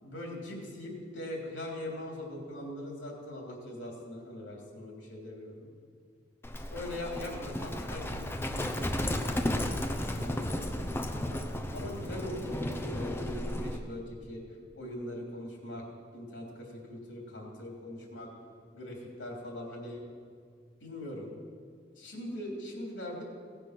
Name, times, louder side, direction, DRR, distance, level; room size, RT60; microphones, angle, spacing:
voice 1, 0.0-5.7 6.7-14.4 14.7-15.8 16.1-18.3 18.7-20.0 20.8-21.3 22.0-23.2, left 1 dB, 70° left, -1 dB, 3.3 m, -41 dB
Livestock farm animals working animals, 6.4-13.8, left 1 dB, 15° left, 0.7 m, -34 dB
17.0 x 6.8 x 6.0 m, 2.1 s
head